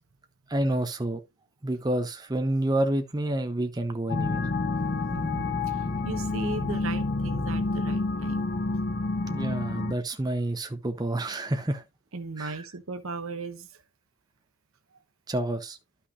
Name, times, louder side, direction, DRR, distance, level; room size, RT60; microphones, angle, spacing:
voice 1, 0.5-1.2 1.6-4.4 9.3-11.8 12.4-12.6 15.3-15.8, right 1 dB, 20° right, 0.8 m, -28 dB
sound 1, 4.1-9.9, left 3 dB, 45° left, 0.7 m, -28 dB
voice 2, 4.7-8.5 12.1-13.7, right 3 dB, 70° right, 1.1 m, -37 dB
12.0 x 5.7 x 2.5 m
head